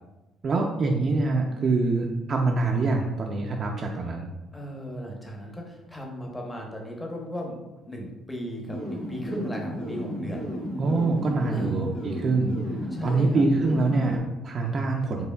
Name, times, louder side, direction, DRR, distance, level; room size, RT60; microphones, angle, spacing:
voice 1, 0.4-4.3 10.8-15.3, right 3 dB, 40° right, 1 dB, 0.3 m, -25 dB
voice 2, 4.5-10.5 11.5-11.8 12.9-13.4, equal, 10° left, 0 dB, 0.7 m, -36 dB
sound 1, 8.6-14.2, equal, 55° left, 0.8 m, -33 dB
4.2 x 3.1 x 2.2 m, 1.0 s
cardioid pair, 130°, 0 cm